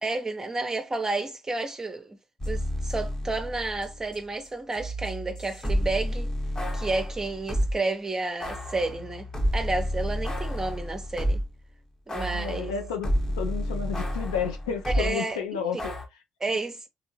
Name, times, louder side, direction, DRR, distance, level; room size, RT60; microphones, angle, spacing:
voice 1, 0.0-2.2 2.5-6.3 6.7-11.4 12.1-12.7 14.9-15.6 16.4-16.9, right 3 dB, 20° right, 0.6 m, -31 dB
sound 1, 2.4-4.2 4.4-7.8 8.4-11.6 12.1-15.1 15.8-16.1, equal, 20° left, 0.8 m, -30 dB
voice 2, 12.3-16.2, left 7 dB, 75° left, 0.4 m, -32 dB
3.5 x 2.9 x 2.8 m
figure-of-eight pair, 45°, 3 cm